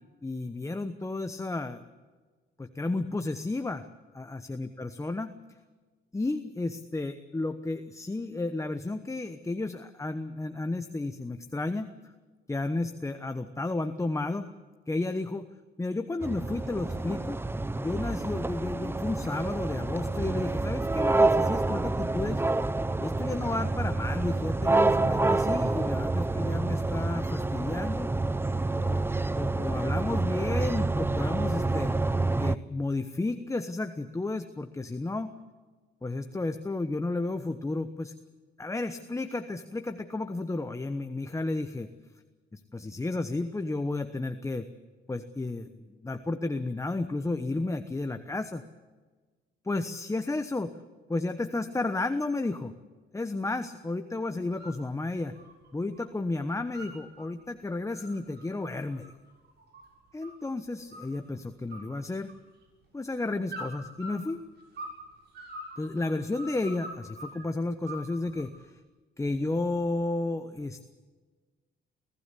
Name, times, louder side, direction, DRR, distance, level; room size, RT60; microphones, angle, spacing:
voice 1, 0.2-1.8 2.6-3.9 4.1-5.3 6.1-11.9 12.5-14.5 14.9-15.5 15.8-17.4 17.8-22.4 23.0-28.1 28.7-31.9 32.4-35.3 36.0-38.1 38.6-41.9 42.5-44.7 45.1-45.7 46.0-48.6 49.6-50.7 51.1-52.7 53.1-55.4 55.7-59.1 60.1-62.3 62.9-64.4 65.8-68.8 69.2-70.8, left 2 dB, 15° left, 8 dB, 1.0 m, -32 dB
sound 1, 16.2-32.6, right 2 dB, 10° right, 0.6 m, -28 dB
sound 2, 54.4-54.8 55.1-56.1 56.4-57.3 57.7-60.5 60.9-61.4 61.7-62.7 63.5-65.0 65.3-67.4 67.8-68.6, right 1 dB, 60° right, 7.2 m, -44 dB
23.5 x 16.0 x 8.4 m, 1.4 s
cardioid pair, 90°, 20 cm